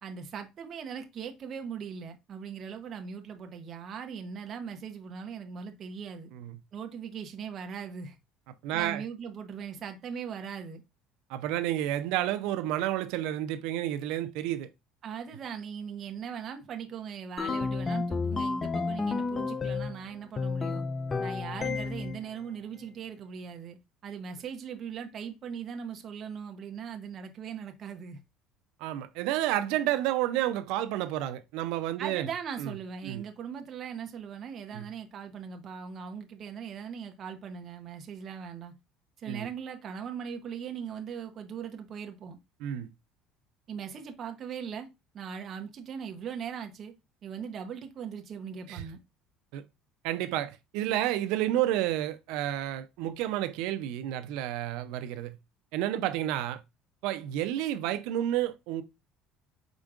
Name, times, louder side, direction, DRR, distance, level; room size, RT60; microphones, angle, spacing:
voice 1, 0.0-6.3 6.7-8.2 8.7-10.8 15.0-20.8 21.2-23.8 24.0-28.2 32.0-38.7 39.2-42.4 43.7-44.9 45.1-46.9 47.2-49.0, right 7 dB, 35° right, 0.7 m, -39 dB
voice 2, 8.6-9.0 11.3-14.7 28.8-32.3 32.6-32.7 33.0-33.2 34.7-34.9 39.3-39.5 42.6-42.9 48.7-48.8 49.5-49.6 50.0-55.4 55.7-56.6 57.0-58.8, right 13 dB, 75° right, 0.5 m, -30 dB
sound 1, 17.4-20.0 20.4-22.2, left 4 dB, 20° left, 0.3 m, -31 dB
5.0 x 4.4 x 2.4 m
cardioid pair, 155°, 0 cm